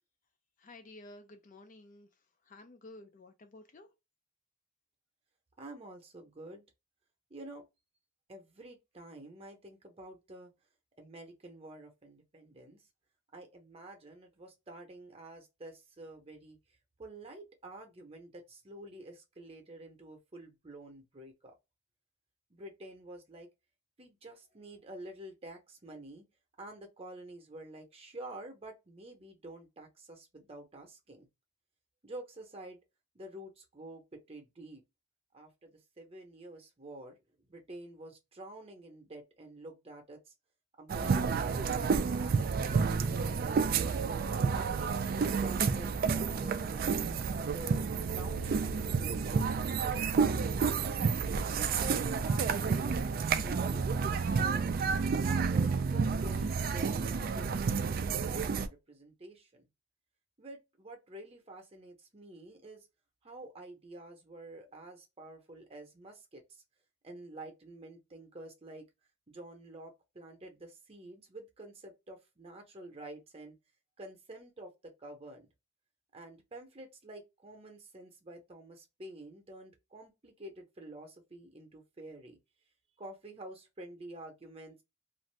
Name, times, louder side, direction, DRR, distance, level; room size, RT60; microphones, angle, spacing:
voice 1, 0.6-2.1 2.5-3.9, left 2 dB, 40° left, 0.4 m, -52 dB
voice 2, 5.6-6.6 7.3-7.6 8.3-10.5 11.0-12.8 13.3-16.6 17.0-21.6 22.5-23.5 24.0-26.3 26.6-31.3 32.0-32.8 33.1-34.8 35.3-37.2 37.4-40.3 40.8-43.9 44.5-46.9 47.5-51.0 51.5-54.7 55.2-59.7 60.4-62.9 63.2-66.6 67.0-68.8 69.3-73.6 74.0-75.5 76.1-82.4 83.0-84.8, right 1 dB, 30° right, 0.8 m, -49 dB
sound 1, 40.9-58.7, right 5 dB, 45° right, 0.3 m, -30 dB
2.5 x 2.5 x 3.2 m
head